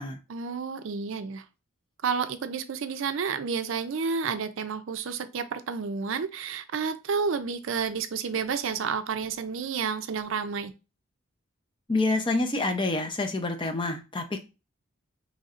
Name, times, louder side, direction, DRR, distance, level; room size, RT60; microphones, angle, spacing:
voice 1, 0.3-1.4 2.0-10.7, right 5 dB, 70° right, 10 dB, 0.4 m, -30 dB
voice 2, 11.9-14.4, left 2 dB, 25° left, 5 dB, 0.5 m, -27 dB
4.1 x 3.1 x 2.5 m, 0.29 s
head